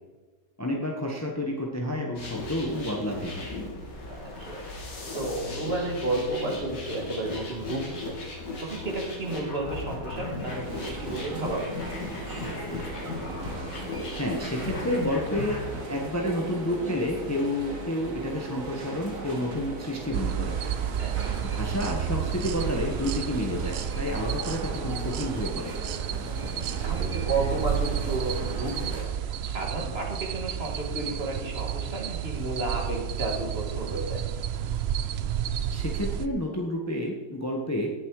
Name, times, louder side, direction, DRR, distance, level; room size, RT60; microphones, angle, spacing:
voice 1, 0.6-3.5 14.2-15.6 15.9-20.6 21.4-25.7 35.7-37.9, left 1 dB, 10° left, 0 dB, 1.2 m, -30 dB
sound 1, 2.2-15.8, left 3 dB, 90° left, 3.0 m, -36 dB
voice 2, 4.0-4.7 5.1-11.7 21.0-21.3 26.4-34.2, right 2 dB, 35° right, 0 dB, 2.3 m, -32 dB
sound 2, 10.5-29.0, right 3 dB, 50° right, 2.1 m, -38 dB
sound 3, 20.1-36.3, right 9 dB, 85° right, 0.5 m, -31 dB
18.0 x 7.5 x 4.9 m, 1.4 s
omnidirectional pair, 1.8 m